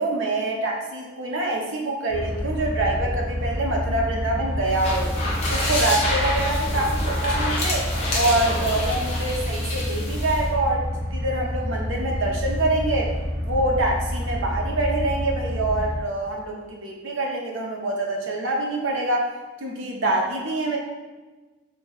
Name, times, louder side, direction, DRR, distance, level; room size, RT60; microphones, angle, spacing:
voice 1, 0.0-5.1 5.5-13.1 13.4-19.3 19.6-20.8, right 2 dB, 80° right, 0 dB, 0.7 m, -25 dB
sound 1, 2.1-16.0, equal, 55° right, 0.9 m, -28 dB
sound 2, 4.6-10.4, left 1 dB, 30° left, 0.7 m, -28 dB
2.9 x 2.6 x 3.9 m, 1.2 s
head